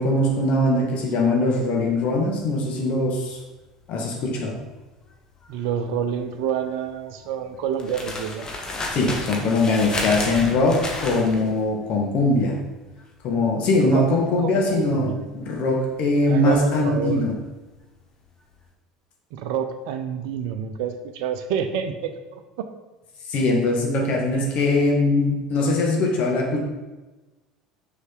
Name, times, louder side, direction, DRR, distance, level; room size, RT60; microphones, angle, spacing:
voice 1, 0.0-3.4 3.9-4.6 8.9-12.6 13.2-17.3 23.3-26.6, left 2 dB, 45° left, 0 dB, 1.7 m, -21 dB
sound 1, 1.8-18.0 18.3-18.6, left 2 dB, 25° left, 1.5 m, -34 dB
voice 2, 5.5-8.5 13.7-14.1 14.4-15.2 16.3-17.2 19.3-22.7, right 8 dB, 55° right, 7 dB, 0.7 m, -28 dB
6.5 x 6.0 x 4.6 m, 1.2 s
figure-of-eight pair, 70°, 3 cm